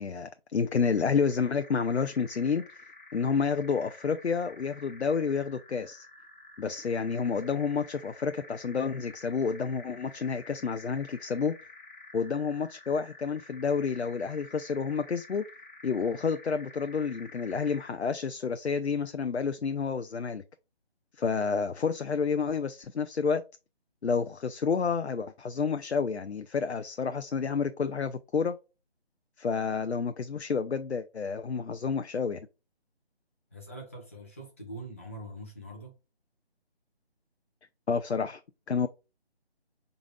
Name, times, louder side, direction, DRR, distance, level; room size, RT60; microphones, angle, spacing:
voice 1, 0.0-2.6 3.1-6.1 6.6-11.5 12.1-15.4 15.8-20.4 21.2-23.4 24.0-28.6 29.4-32.4 37.9-38.4 38.7-38.9, left 5 dB, 85° left, 0.5 m, -29 dB
sound 1, 0.6-18.0, left 2 dB, 45° left, 1.1 m, -51 dB
voice 2, 33.5-36.0, right 1 dB, 15° left, 0.7 m, -43 dB
4.7 x 3.9 x 2.2 m
figure-of-eight pair, 155°, 32 cm